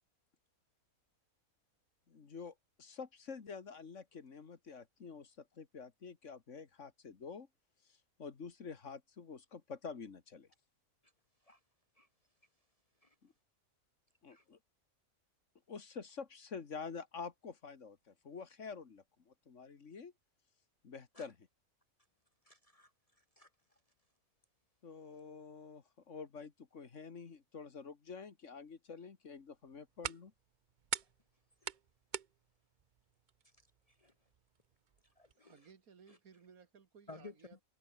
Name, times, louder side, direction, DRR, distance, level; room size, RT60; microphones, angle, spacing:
voice 1, 2.1-7.5 8.2-10.5 13.2-13.3 14.2-14.6 15.7-20.1 20.8-21.4 24.8-30.3, left 5 dB, 55° left, 2.0 m, -48 dB
voice 2, 22.4-23.8 31.6-31.8 33.4-33.5 33.9-34.1 35.2-35.6 36.1-36.2 37.1-37.6, left 3 dB, 35° left, 0.7 m, -56 dB
sound 1, 29.4-35.3, right 8 dB, 45° right, 0.6 m, -47 dB
voice 3, 35.4-37.6, right 6 dB, 75° right, 2.2 m, -60 dB
omnidirectional pair, 1.5 m